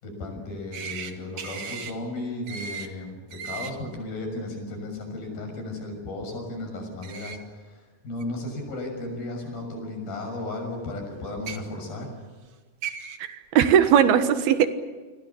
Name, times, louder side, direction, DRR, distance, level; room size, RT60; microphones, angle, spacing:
voice 1, 0.0-12.1, left 2 dB, 65° left, 3 dB, 8.3 m, -35 dB
sound 1, 0.7-1.1 1.4-1.9 2.5-2.9 3.3-3.7 7.0-7.4 8.2-8.3 9.5-9.6 11.3-11.6 12.5-12.6 12.8-13.2, right 6 dB, 50° right, 2.4 m, -36 dB
voice 2, 13.2-14.7, right 8 dB, 80° right, 10 dB, 3.2 m, -19 dB
29.5 x 23.0 x 7.2 m, 1.4 s
omnidirectional pair, 4.5 m